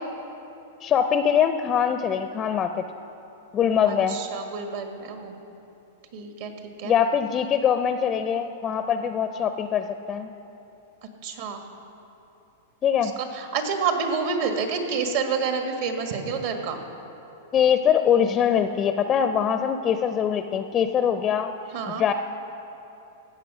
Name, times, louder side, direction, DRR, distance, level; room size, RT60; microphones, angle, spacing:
voice 1, 0.8-2.8 3.5-4.2 6.8-10.3 12.8-13.1 17.5-21.5 22.0-22.1, left 8 dB, 25° left, 9 dB, 0.4 m, -23 dB
voice 2, 3.8-5.4 6.1-6.9 11.2-11.6 13.0-16.8 21.7-22.0, right 5 dB, 60° right, 5 dB, 1.6 m, -28 dB
15.5 x 7.5 x 6.2 m, 2.9 s
supercardioid pair, 145°, 0 cm